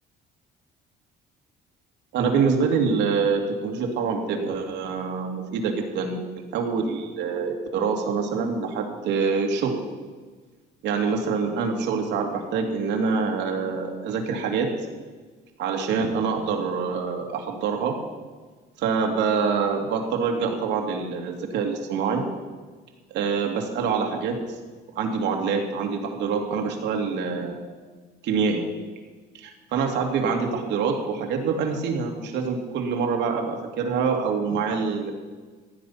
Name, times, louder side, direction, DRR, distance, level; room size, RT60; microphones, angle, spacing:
voice 1, 2.1-9.8 10.8-14.7 15.6-18.0 18.8-22.2 23.1-24.4 25.0-27.6 28.2-28.6 29.3-35.1, right 5 dB, 70° right, 2 dB, 2.5 m, -25 dB
15.5 x 10.0 x 5.8 m, 1.4 s
cardioid pair, 135°, 19 cm